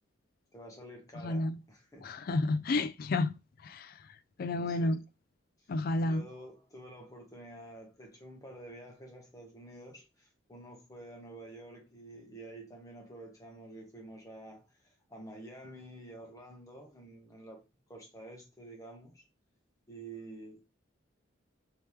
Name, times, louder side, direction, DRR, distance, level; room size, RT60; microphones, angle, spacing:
voice 1, 0.5-2.1 4.5-4.9 6.0-17.6 17.9-19.2 19.9-20.6, right 1 dB, 15° left, 1.0 m, -49 dB
voice 2, 1.2-1.6 2.0-3.3 3.6-5.0 5.7-6.2, left 2 dB, 50° left, 0.3 m, -31 dB
3.2 x 2.9 x 3.2 m
head